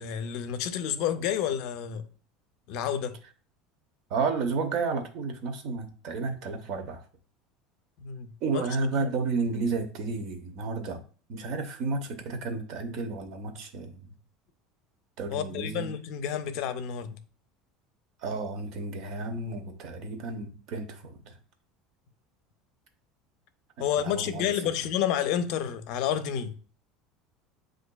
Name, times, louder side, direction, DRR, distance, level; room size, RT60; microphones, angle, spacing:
voice 1, 0.0-2.1 2.7-3.2 8.0-8.7 15.3-17.2 23.8-26.6, left 9 dB, 65° left, 0.5 m, -30 dB
voice 2, 4.1-7.0 8.4-11.0 11.3-14.1 15.2-15.9 18.2-21.4 24.0-24.5, right 4 dB, 55° right, 0.8 m, -32 dB
7.7 x 2.6 x 2.2 m
supercardioid pair, 130°, 0 cm